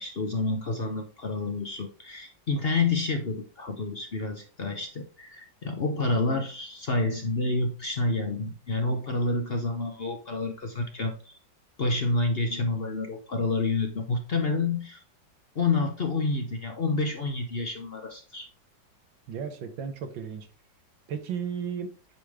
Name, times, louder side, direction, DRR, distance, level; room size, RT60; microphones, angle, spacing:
voice 1, 0.0-11.4 11.8-15.0 15.5-18.5, left 3 dB, 45° left, 4 dB, 0.7 m, -29 dB
voice 2, 19.3-20.5 21.1-21.9, right 7 dB, 90° right, 7 dB, 1.8 m, -34 dB
8.9 x 5.1 x 3.5 m, 0.37 s
omnidirectional pair, 2.0 m